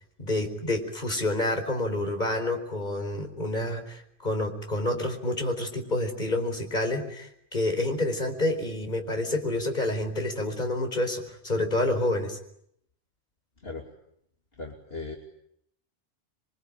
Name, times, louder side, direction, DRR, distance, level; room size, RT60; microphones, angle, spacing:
voice 1, 0.2-12.4, left 1 dB, 40° left, 5 dB, 4.8 m, -28 dB
voice 2, 14.6-15.2, left 3 dB, 60° left, 1 dB, 3.2 m, -37 dB
27.5 x 24.0 x 9.0 m, 0.74 s
omnidirectional pair, 1.2 m